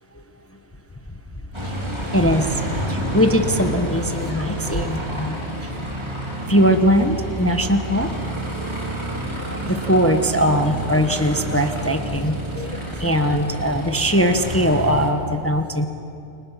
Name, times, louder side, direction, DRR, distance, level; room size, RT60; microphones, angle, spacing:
Aircraft, 1.5-15.1, right 1 dB, 20° right, 3.6 m, -29 dB
voice 1, 2.1-2.5 3.1-5.4 6.5-8.1 9.5-12.7 13.0-15.9, equal, 10° left, 6 dB, 1.0 m, -20 dB
29.0 x 25.5 x 5.8 m, 2.7 s
omnidirectional pair, 1.4 m